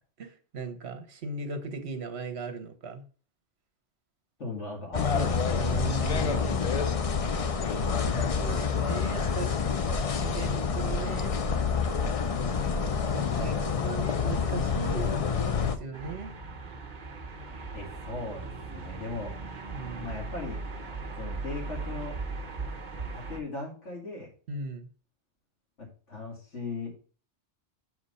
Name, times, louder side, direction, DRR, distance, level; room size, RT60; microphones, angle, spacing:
voice 1, 0.2-3.0 5.6-6.9 7.3-7.5 7.8-9.9 10.2-11.4 13.1-13.5 13.8-15.1 15.6-16.3 19.7-20.2 24.5-24.9, right 4 dB, 65° right, 7 dB, 1.3 m, -38 dB
voice 2, 4.4-5.5 13.3-14.1 17.7-19.3 20.0-20.6 21.2-22.2 23.1-24.3 25.8-26.9, left 3 dB, 85° left, -2 dB, 2.8 m, -38 dB
sound 1, 4.9-15.8, left 5 dB, 40° left, 0.5 m, -28 dB
sound 2, 15.9-23.4, right 3 dB, 45° right, 1.2 m, -38 dB
6.1 x 4.8 x 5.5 m, 0.40 s
omnidirectional pair, 1.2 m